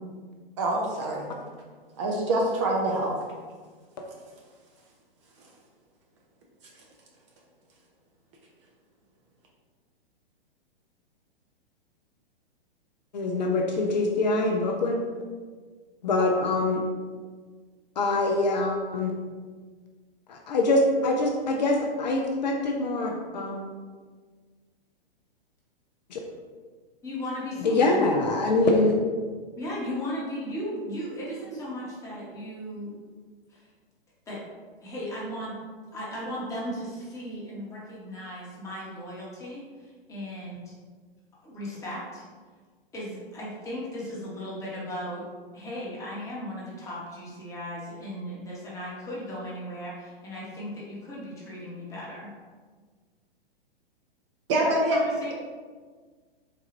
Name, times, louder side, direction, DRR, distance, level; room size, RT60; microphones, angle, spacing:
voice 1, 0.6-1.3 2.0-3.1 54.5-55.0, right 1 dB, 30° right, -1 dB, 0.5 m, -25 dB
voice 2, 13.1-15.0 16.0-16.8 18.0-19.1 20.3-23.6 26.1-26.2 27.6-28.9, left 2 dB, 50° left, 1 dB, 0.4 m, -24 dB
voice 3, 27.0-28.0 29.6-33.0 33.5-33.7 34.3-34.4 34.8-35.6 35.9-40.7 41.4-42.2 42.9-45.2 45.5-52.3 54.6-55.3, equal, 10° left, -6 dB, 0.9 m, -36 dB
3.8 x 2.3 x 3.0 m, 1.5 s
figure-of-eight pair, 110°, 29 cm